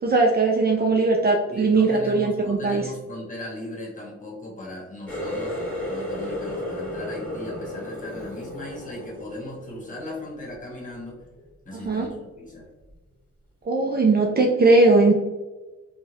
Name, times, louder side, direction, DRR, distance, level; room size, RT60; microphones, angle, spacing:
voice 1, 0.0-2.8 11.7-12.1 13.6-15.1, right 3 dB, 30° right, 0 dB, 0.5 m, -19 dB
voice 2, 1.5-5.6 5.9-11.2 11.6-12.7, left 1 dB, 25° left, -3 dB, 1.3 m, -37 dB
Water tap faucet, 5.1-10.6 10.9-11.4 11.9-12.1 12.9-13.0, left 1 dB, 5° left, 1.4 m, -33 dB
3.6 x 2.3 x 2.9 m, 1.1 s
cardioid pair, 90°, 30 cm